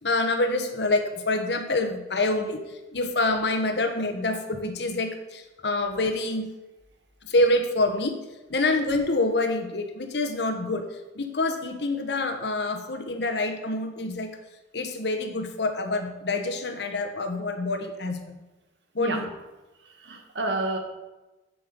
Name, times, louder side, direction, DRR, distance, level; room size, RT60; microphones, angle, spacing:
voice 1, 0.0-2.6 2.9-6.5 7.2-8.2 8.5-10.8 11.1-14.3 14.7-18.4 18.9-19.3, left 2 dB, 65° left, 6 dB, 1.1 m, -26 dB
voice 2, 19.8-20.8, right 2 dB, 75° right, 3 dB, 1.5 m, -29 dB
7.6 x 7.4 x 5.2 m, 1.1 s
head